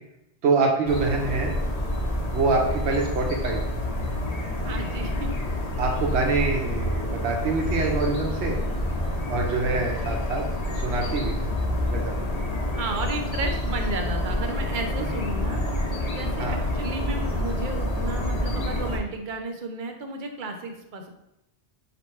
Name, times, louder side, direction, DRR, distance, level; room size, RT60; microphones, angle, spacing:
voice 1, 0.4-1.5 2.3-3.6 5.8-8.6 9.3-10.5 10.7-11.6 11.9-12.2 16.4-16.6, right 3 dB, 75° right, 1 dB, 1.1 m, -25 dB
sound 1, 0.9-19.0, left 1 dB, 45° left, 0.6 m, -28 dB
voice 2, 4.6-5.3 12.7-21.1, right 3 dB, 55° right, 4 dB, 0.6 m, -33 dB
4.4 x 2.9 x 3.1 m, 0.86 s
omnidirectional pair, 1.1 m